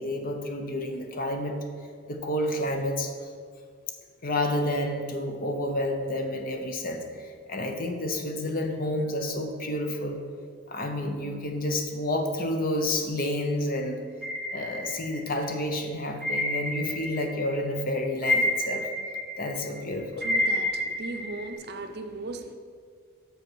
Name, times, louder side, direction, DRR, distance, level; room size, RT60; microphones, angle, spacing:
voice 1, 0.0-1.6 2.1-3.1 4.2-10.2 10.7-14.0 14.5-18.9 19.4-20.3, left 1 dB, 40° left, 4 dB, 0.8 m, -30 dB
sound 1, 14.2-15.5 16.2-17.5 17.8-21.5, left 1 dB, ahead, 1.1 m, -29 dB
voice 2, 20.2-22.6, right 2 dB, 50° right, 6 dB, 0.5 m, -37 dB
6.4 x 5.4 x 6.1 m, 2.1 s
head